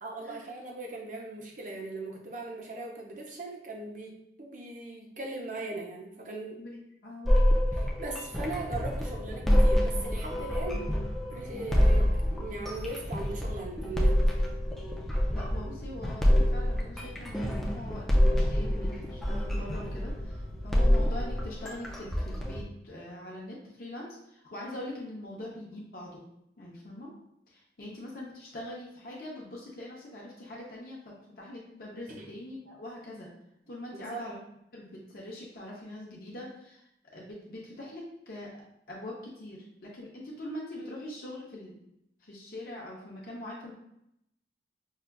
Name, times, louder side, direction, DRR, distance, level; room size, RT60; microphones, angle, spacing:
voice 1, 0.0-6.6 7.7-10.9 11.3-14.2 27.8-27.9 32.1-32.3 33.9-34.2, right 2 dB, 45° right, 0 dB, 0.6 m, -39 dB
voice 2, 6.6-7.3 15.3-26.2 26.6-27.1 27.5-31.0 31.4-33.3 33.7-34.4 34.7-36.8 37.1-38.6 38.9-41.8 42.2-43.7, left 1 dB, 50° left, -4 dB, 0.6 m, -43 dB
sound 1, 7.3-22.6, equal, ahead, 0.4 m, -27 dB
Mechanical fan, 8.5-21.3, equal, 80° right, 0.8 m, -44 dB
5.4 x 2.3 x 2.2 m, 0.80 s
head